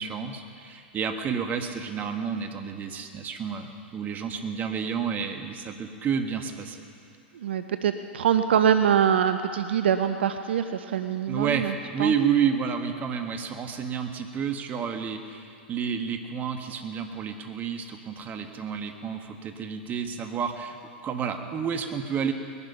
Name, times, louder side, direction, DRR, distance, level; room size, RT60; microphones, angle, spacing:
voice 1, 0.0-6.8 11.3-22.3, right 7 dB, 30° right, 5 dB, 1.5 m, -30 dB
voice 2, 7.3-12.1, right 8 dB, 75° right, 8 dB, 0.7 m, -24 dB
20.5 x 11.0 x 5.7 m, 2.5 s
hypercardioid pair, 105°, 6 cm